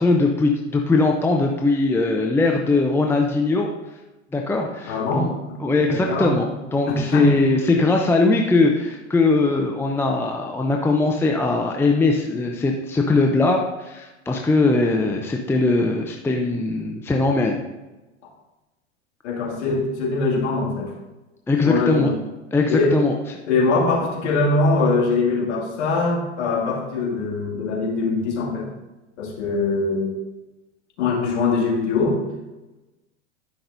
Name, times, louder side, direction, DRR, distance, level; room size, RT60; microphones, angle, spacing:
voice 1, 0.0-3.7 4.3-5.3 5.6-17.6 21.5-22.1 22.5-23.1, left 3 dB, 5° left, 1 dB, 0.5 m, -20 dB
voice 2, 4.9-5.6 5.9-6.3 6.9-7.4 19.2-20.9 21.6-22.1 22.7-23.0 23.5-28.7 29.2-30.2 31.0-32.2, left 3 dB, 65° left, -3 dB, 2.5 m, -22 dB
11.5 x 5.9 x 2.6 m, 1.1 s
hypercardioid pair, 100°, 37 cm